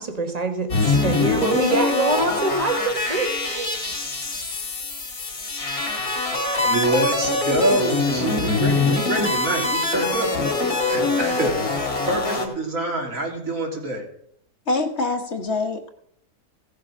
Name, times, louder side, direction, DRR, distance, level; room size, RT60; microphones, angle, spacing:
voice 1, 0.0-3.8, right 3 dB, 25° right, 6 dB, 1.4 m, -25 dB
sound 1, 0.7-12.5, left 3 dB, 70° left, 2.4 m, -24 dB
voice 2, 6.6-10.3 10.9-14.1, right 2 dB, 60° right, 1 dB, 2.9 m, -25 dB
voice 3, 14.7-15.9, left 3 dB, 50° left, 5 dB, 1.5 m, -25 dB
16.5 x 6.7 x 6.1 m, 0.71 s
omnidirectional pair, 1.6 m